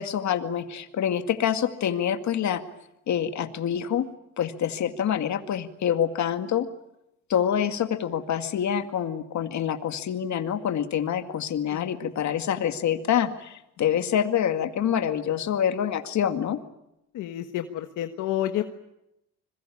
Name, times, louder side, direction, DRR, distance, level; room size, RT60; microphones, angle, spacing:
voice 1, 0.0-2.6 3.1-4.1 4.4-6.7 7.3-16.6, left 9 dB, 65° left, 8 dB, 2.2 m, -26 dB
voice 2, 17.1-18.6, left 12 dB, 85° left, 6 dB, 1.4 m, -30 dB
26.0 x 22.0 x 8.7 m, 0.85 s
cardioid pair, 90°, 30 cm